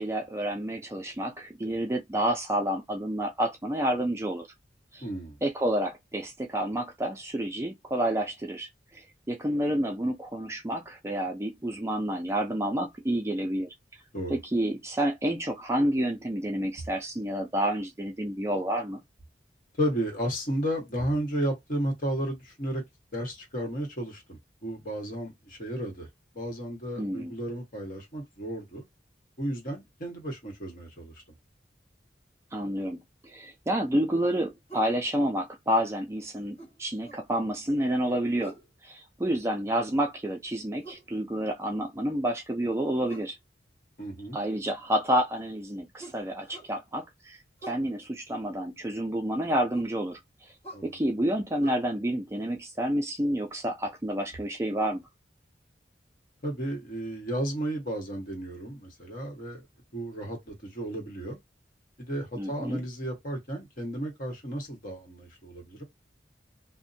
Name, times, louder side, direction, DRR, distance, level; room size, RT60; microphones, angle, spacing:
voice 1, 0.0-4.5 4.9-5.0 5.4-13.7 14.3-19.0 27.0-27.3 32.5-38.5 38.8-43.4 44.3-50.2 50.8-55.0 62.4-62.8, right 1 dB, 15° right, 0.3 m, -29 dB
voice 2, 5.0-5.4 14.1-14.4 19.8-22.8 23.1-26.1 26.3-28.8 29.4-31.1 44.0-44.4 50.7-50.9 56.4-59.7 59.9-61.4 62.0-65.8, right 1 dB, 45° left, 1.2 m, -33 dB
sound 1, 34.7-34.9 36.6-37.3 38.4-38.7 40.8-41.1 43.1-43.4 46.0-46.7 47.6-47.9 49.7-50.0 50.6-50.9 51.6-51.7, right 3 dB, 30° left, 1.5 m, -45 dB
2.6 x 2.1 x 2.6 m
head